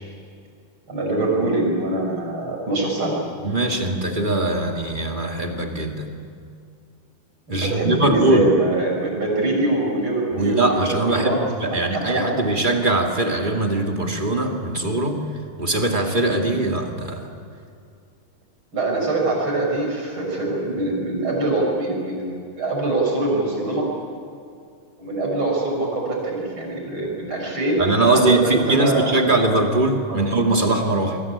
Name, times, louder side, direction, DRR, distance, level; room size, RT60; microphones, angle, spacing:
voice 1, 0.9-3.2 7.5-11.4 11.7-12.2 18.7-23.9 25.0-29.3 30.1-30.2, right 2 dB, 35° right, -1 dB, 7.1 m, -24 dB
voice 2, 3.4-6.1 7.5-8.5 10.3-15.2 15.6-17.3 27.8-31.2, right 2 dB, 15° right, 2 dB, 1.8 m, -21 dB
27.0 x 22.5 x 8.6 m, 2.4 s
omnidirectional pair, 4.1 m